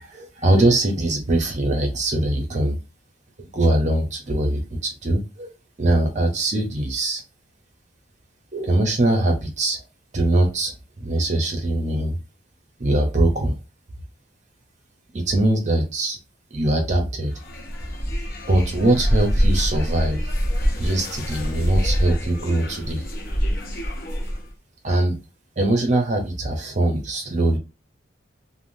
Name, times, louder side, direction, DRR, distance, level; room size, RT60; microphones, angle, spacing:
voice 1, 0.0-2.8 3.5-5.5 5.8-7.2 8.5-9.8 10.1-12.2 12.8-13.6 15.1-16.2 16.5-17.3 18.4-20.3 20.8-23.0 24.8-25.2 25.6-27.6, right 1 dB, 40° right, 2 dB, 0.6 m, -22 dB
sound 1, 17.3-24.5, equal, 50° left, 0.7 m, -25 dB
3.4 x 2.0 x 2.5 m, 0.28 s
head